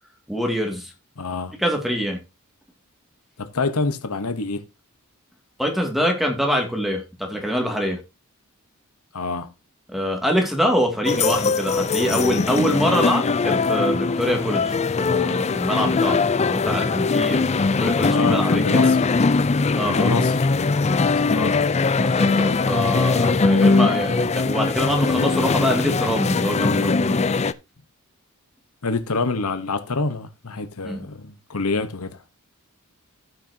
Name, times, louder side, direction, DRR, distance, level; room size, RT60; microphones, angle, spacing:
voice 1, 0.3-0.9 1.5-2.2 5.6-8.0 9.9-18.9 19.8-20.2 22.0-27.2 30.8-31.0, equal, ahead, 2.3 m, -24 dB
voice 2, 1.2-1.5 3.4-4.6 9.1-9.5 18.1-19.1 19.8-21.6 23.6-23.7 28.8-32.3, left 3 dB, 85° left, 1.1 m, -27 dB
sound 1, 11.1-27.5, left 4 dB, 30° left, 0.5 m, -21 dB
16.0 x 6.1 x 2.8 m
head